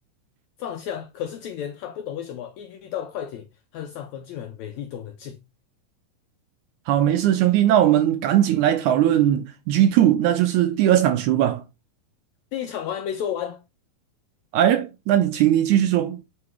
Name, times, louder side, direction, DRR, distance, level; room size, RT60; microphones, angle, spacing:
voice 1, 0.6-3.5 3.7-5.4 12.5-13.6, left 9 dB, 85° left, 1.6 m, -32 dB
voice 2, 6.9-11.6 14.5-16.2, right 11 dB, 80° right, 1.8 m, -19 dB
8.6 x 3.9 x 3.1 m
omnidirectional pair, 3.9 m